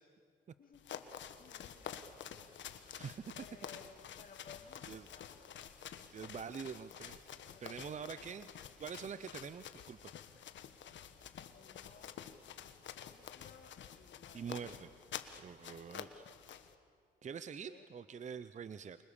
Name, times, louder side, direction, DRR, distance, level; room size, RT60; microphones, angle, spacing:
voice 1, 0.6-2.1 3.4-5.6 7.5-8.4 11.5-12.3 13.0-14.5 17.6-17.9, left 6 dB, 45° left, 4 dB, 1.9 m, -59 dB
sound 1, 0.7-16.7, left 9 dB, 65° left, 1.5 m, -49 dB
voice 2, 2.9-3.2 4.9-5.1 6.1-7.2 7.6-8.5 8.8-10.1 14.3-14.9 15.4-16.2 17.2-19.0, right 6 dB, 35° right, 13 dB, 0.7 m, -45 dB
29.0 x 25.5 x 7.1 m, 2.2 s
cardioid pair, 90°, 20 cm